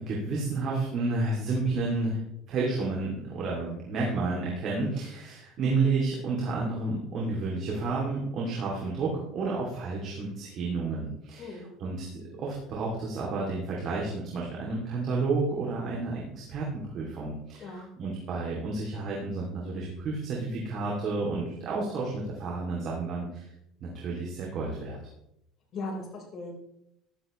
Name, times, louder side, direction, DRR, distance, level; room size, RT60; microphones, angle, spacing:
voice 1, 0.0-2.2 2.5-16.7 16.9-23.5 23.8-25.0, right 3 dB, 45° right, -3 dB, 2.8 m, -31 dB
voice 2, 11.4-11.7 17.6-17.9 25.7-26.5, left 2 dB, 40° left, -1 dB, 4.4 m, -38 dB
14.0 x 11.5 x 3.2 m, 0.78 s
cardioid pair, 145°, 0 cm